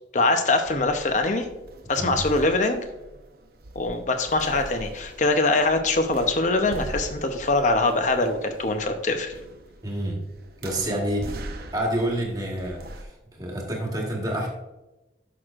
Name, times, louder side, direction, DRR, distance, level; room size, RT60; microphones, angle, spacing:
voice 1, 0.1-1.5 1.9-2.8 3.7-9.3, left 2 dB, 40° left, 6 dB, 0.7 m, -23 dB
sound 1, 0.6-13.0, right 1 dB, 55° right, 0.7 m, -42 dB
voice 2, 9.8-10.2 10.6-11.4 11.7-13.1 13.4-14.5, right 1 dB, 20° right, -1 dB, 1.4 m, -28 dB
10.5 x 6.3 x 2.5 m, 1.0 s
head